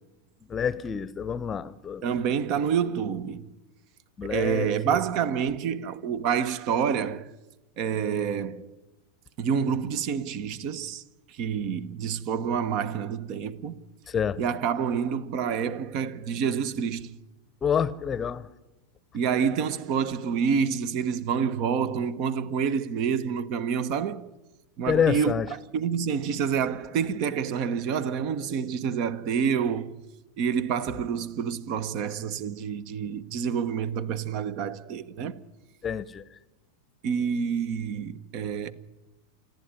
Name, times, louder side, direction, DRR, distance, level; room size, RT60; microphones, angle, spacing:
voice 1, 0.5-2.0 4.2-5.0 14.1-14.4 17.6-18.5 24.9-25.5 35.8-36.2, left 7 dB, 25° left, 0.8 m, -27 dB
voice 2, 2.0-3.5 4.2-7.3 7.8-8.8 9.4-11.0 11.3-13.8 14.4-17.1 19.1-24.3 24.8-30.0 30.4-35.4 37.0-38.7, right 7 dB, 50° right, 1.1 m, -28 dB
27.0 x 10.5 x 9.7 m
figure-of-eight pair, 90°, 0 cm